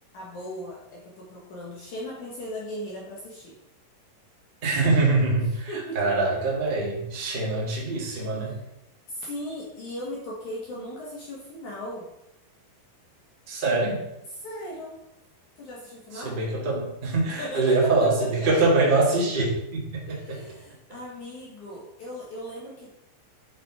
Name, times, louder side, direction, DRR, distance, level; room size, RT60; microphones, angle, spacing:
voice 1, 0.1-3.6 5.3-5.4 5.7-6.1 8.3-8.6 9.1-12.1 14.4-15.0 15.6-16.4 17.4-18.1 20.1-22.9, equal, 60° left, -4 dB, 2.1 m, -37 dB
voice 2, 4.6-8.6 13.5-14.0 16.1-20.4, right 3 dB, 25° right, -4 dB, 1.0 m, -24 dB
8.6 x 6.1 x 4.8 m, 0.88 s
omnidirectional pair, 5.0 m